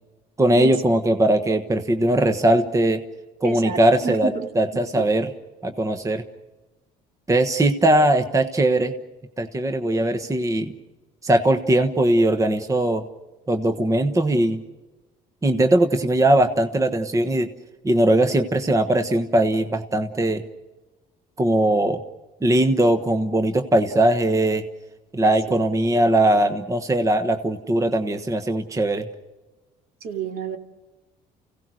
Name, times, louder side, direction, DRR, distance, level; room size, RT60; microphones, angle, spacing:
voice 1, 0.4-3.0 3.4-5.3 5.6-6.2 7.3-8.9 9.4-10.7 11.2-13.0 13.5-14.6 15.4-17.5 17.8-20.4 21.4-22.0 22.4-24.6 25.1-29.1, right 1 dB, 20° right, 7 dB, 1.3 m, -20 dB
voice 2, 3.4-4.5 4.7-5.1 25.2-25.6 30.0-30.6, right 6 dB, 65° right, 4 dB, 2.7 m, -30 dB
30.0 x 17.0 x 6.4 m, 1.2 s
cardioid pair, 110°, 17 cm